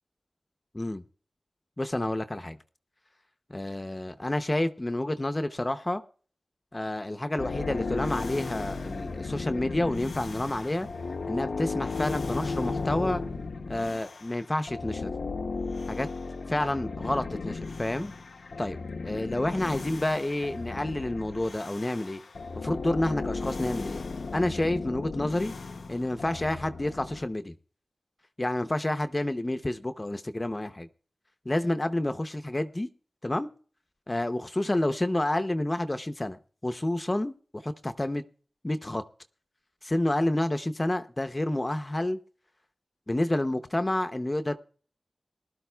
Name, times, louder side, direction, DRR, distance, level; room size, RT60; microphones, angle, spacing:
voice 1, 1.8-2.6 3.5-6.0 6.7-10.9 11.3-13.2 13.7-15.1 15.9-16.1 16.5-18.1 18.6-18.8 19.0-22.2 22.6-24.0 24.3-25.5 25.9-27.5 28.4-30.9 31.5-32.9 33.2-33.5 34.1-36.4 36.6-38.2 38.6-39.0 39.8-42.2 43.1-44.6, left 1 dB, 25° left, 0.6 m, -29 dB
sound 1, 7.4-14.4 14.7-27.2, left 4 dB, 85° left, 0.6 m, -35 dB
20.0 x 12.0 x 2.3 m
wide cardioid pair, 70°, 0 cm